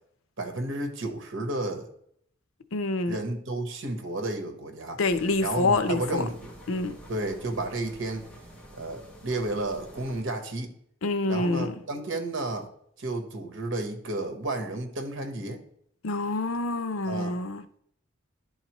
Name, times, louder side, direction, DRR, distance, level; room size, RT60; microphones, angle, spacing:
voice 1, 0.4-1.9 3.1-5.0 5.4-6.5 7.1-8.3 8.8-10.7 11.3-12.7 13.0-15.6 17.0-17.4, right 2 dB, 65° right, 1.2 m, -32 dB
voice 2, 2.7-3.2 5.0-6.3 6.7-7.0 11.0-11.8 16.0-17.6, left 2 dB, 85° left, 0.6 m, -27 dB
sound 1, 5.0-10.2, equal, 5° left, 1.3 m, -48 dB
11.0 x 4.0 x 3.0 m
head